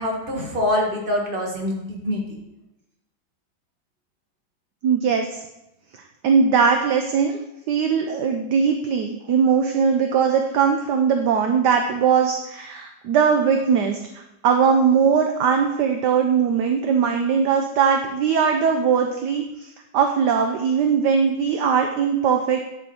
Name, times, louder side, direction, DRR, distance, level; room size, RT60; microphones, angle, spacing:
voice 1, 0.0-2.2, left 1 dB, 30° right, -1 dB, 1.7 m, -24 dB
voice 2, 4.8-5.4 6.2-7.4 7.7-14.0 14.4-22.6, right 6 dB, 65° right, 4 dB, 1.2 m, -20 dB
10.5 x 5.4 x 4.4 m, 0.89 s
omnidirectional pair, 2.2 m